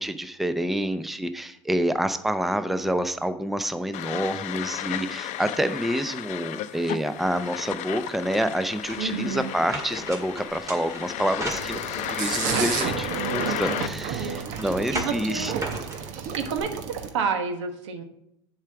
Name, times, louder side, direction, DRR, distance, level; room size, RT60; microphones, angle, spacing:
voice 1, 0.0-15.5, right 1 dB, ahead, 11 dB, 0.6 m, -28 dB
sound 1, 3.9-13.9, left 13 dB, 55° left, 0.6 m, -34 dB
sound 2, 8.8-12.2 12.7-16.6, right 1 dB, 20° right, 2.0 m, -38 dB
voice 2, 9.0-9.5 13.1-13.8 14.2-14.6 14.9-15.5 16.0-18.0, right 5 dB, 80° right, 7 dB, 1.2 m, -31 dB
sound 3, 11.5-17.1, right 7 dB, 60° right, 1.1 m, -31 dB
7.3 x 4.8 x 6.9 m, 0.77 s
hypercardioid pair, 85°, 15 cm